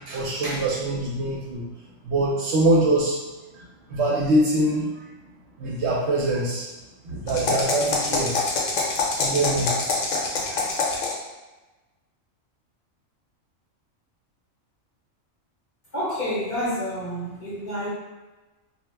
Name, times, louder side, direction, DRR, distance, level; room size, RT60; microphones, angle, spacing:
voice 1, 0.0-1.7 2.0-3.2 3.5-5.1 5.6-6.7 7.0-8.3 9.2-9.7 10.5-10.7, right 1 dB, 65° right, -4 dB, 0.8 m, -24 dB
sound 1, 7.3-11.3, left 3 dB, 75° left, 0.9 m, -25 dB
voice 2, 15.9-17.9, equal, 45° left, -9 dB, 0.7 m, -28 dB
2.2 x 2.0 x 3.2 m, 1.2 s
omnidirectional pair, 1.4 m